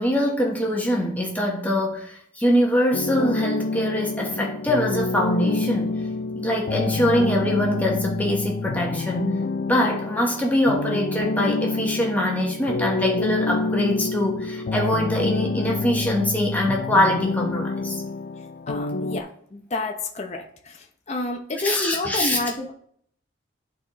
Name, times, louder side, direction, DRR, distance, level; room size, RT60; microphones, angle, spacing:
voice 1, 0.0-5.9 6.3-9.4 9.7-18.0 21.6-22.4, left 1 dB, 10° left, -2 dB, 1.1 m, -23 dB
sound 1, 2.9-19.2, left 3 dB, 50° left, 0.3 m, -27 dB
voice 2, 18.7-22.7, left 2 dB, 35° left, 2 dB, 0.7 m, -29 dB
10.5 x 4.2 x 3.1 m, 0.63 s
head